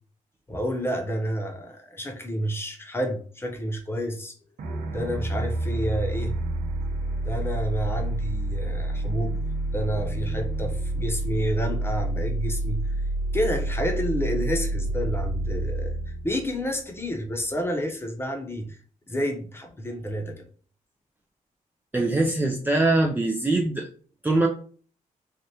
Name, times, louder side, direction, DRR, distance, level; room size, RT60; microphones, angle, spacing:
voice 1, 0.5-4.3 4.9-6.3 7.2-9.3 9.7-12.8 13.3-15.9 16.2-18.8 19.1-20.3, equal, 15° left, 3 dB, 0.8 m, -29 dB
sound 1, 4.6-17.3, right 1 dB, 70° right, 0.7 m, -29 dB
voice 2, 21.9-23.9 24.2-24.5, right 2 dB, 15° right, 1 dB, 0.4 m, -22 dB
3.3 x 2.4 x 2.8 m, 0.42 s
cardioid pair, 85°, 14 cm